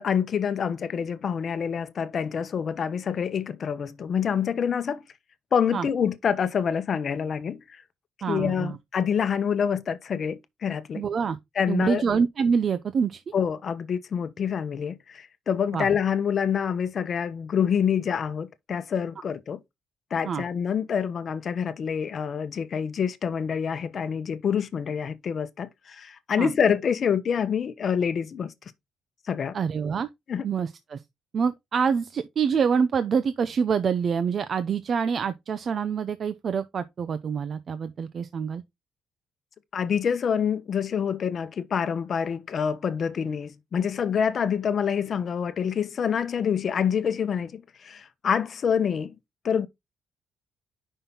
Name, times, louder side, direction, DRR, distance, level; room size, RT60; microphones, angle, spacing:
voice 1, 0.0-5.0 5.5-7.8 8.3-11.0 11.6-12.0 13.3-19.6 20.1-28.5 29.3-29.6 30.3-30.4 39.7-49.1 49.4-49.7, left 7 dB, 55° left, 0.8 m, -26 dB
voice 2, 8.2-8.8 10.9-11.4 11.7-13.2 15.7-15.9 20.2-20.4 26.4-26.5 29.5-30.1 30.4-31.0 31.3-38.6, right 6 dB, 50° right, 0.6 m, -26 dB
5.5 x 4.3 x 5.5 m
cardioid pair, 90°, 0 cm